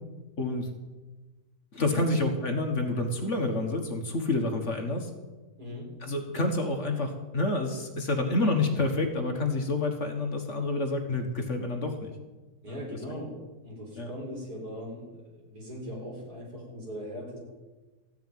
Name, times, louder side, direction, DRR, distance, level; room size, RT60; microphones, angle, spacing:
voice 1, 0.4-0.7 1.7-5.1 6.0-12.1 12.7-12.8 14.0-14.1, left 2 dB, 45° left, 4 dB, 1.7 m, -28 dB
voice 2, 5.6-5.9 12.6-13.4 13.6-17.4, equal, 70° right, -2 dB, 4.9 m, -39 dB
15.0 x 6.9 x 9.2 m, 1.2 s
omnidirectional pair, 1.7 m